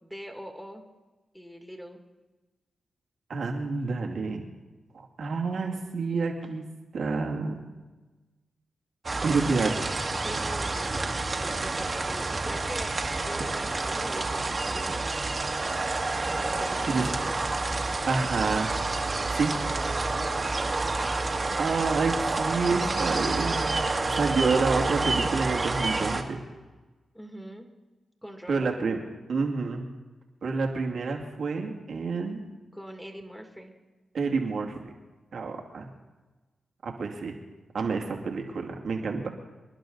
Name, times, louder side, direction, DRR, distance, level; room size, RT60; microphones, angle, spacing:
voice 1, 0.0-0.8 1.3-2.0 9.1-9.7 10.1-15.1 16.5-17.5 27.1-27.7 28.2-28.7 32.7-33.7, equal, 5° left, 3 dB, 2.3 m, -42 dB
voice 2, 3.3-4.5 5.2-6.6 6.9-7.6 9.2-9.7 16.9-17.1 18.1-18.7 19.4-19.5 21.6-23.7 24.1-26.4 28.5-29.0 29.3-29.9 30.4-32.4 34.1-34.8 35.3-35.9 36.8-37.3 37.7-39.3, right 4 dB, 75° right, 2 dB, 2.4 m, -28 dB
sound 1, 9.0-26.2, right 3 dB, 40° right, 1.9 m, -29 dB
sound 2, 17.1-22.4, right 1 dB, 15° right, 1.0 m, -45 dB
27.0 x 11.5 x 4.0 m, 1.2 s
cardioid pair, 65°, 0 cm